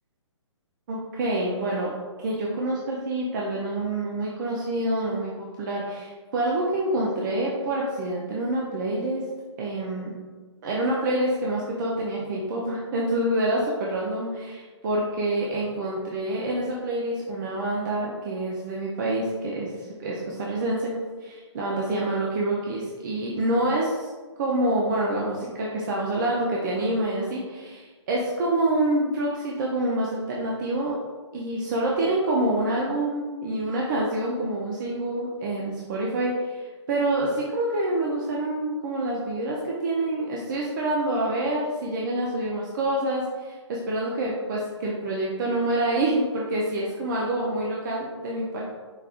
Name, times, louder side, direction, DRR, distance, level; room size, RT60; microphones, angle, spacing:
voice 1, 0.9-1.9 2.2-9.2 9.6-10.1 10.6-20.9 21.2-24.1 24.4-31.0 31.3-48.6, right 1 dB, 40° right, -3 dB, 0.7 m, -27 dB
5.3 x 3.6 x 2.5 m, 1.4 s
hypercardioid pair, 145°, 15 cm